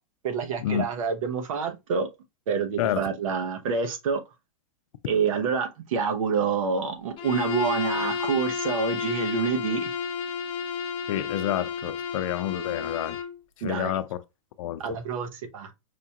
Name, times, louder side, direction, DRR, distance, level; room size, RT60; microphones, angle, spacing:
voice 1, 0.2-2.1 2.5-4.2 5.1-9.9 13.6-14.0 14.8-15.7, right 5 dB, 75° right, 1.0 m, -27 dB
voice 2, 2.8-3.1 11.1-13.2 13.6-14.2 14.6-15.0, left 12 dB, 70° left, 0.5 m, -29 dB
Bowed string instrument, 7.2-13.4, left 6 dB, 30° left, 0.7 m, -31 dB
4.9 x 2.3 x 2.8 m
hypercardioid pair, 135°, 17 cm